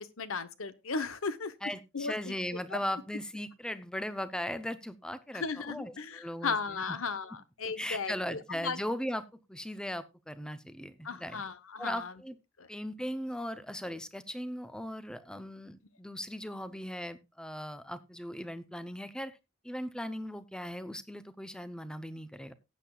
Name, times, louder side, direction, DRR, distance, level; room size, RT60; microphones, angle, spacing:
voice 1, 0.0-1.5 1.9-2.3 2.7-2.8 5.3-8.8 11.0-12.1 12.6-12.7, left 4 dB, 75° left, 15 dB, 0.9 m, -36 dB
voice 2, 1.6-7.0 7.8-11.4 11.8-12.4 12.7-19.3 19.6-22.5, equal, 5° left, 13 dB, 0.6 m, -38 dB
18.0 x 8.4 x 2.3 m, 0.23 s
head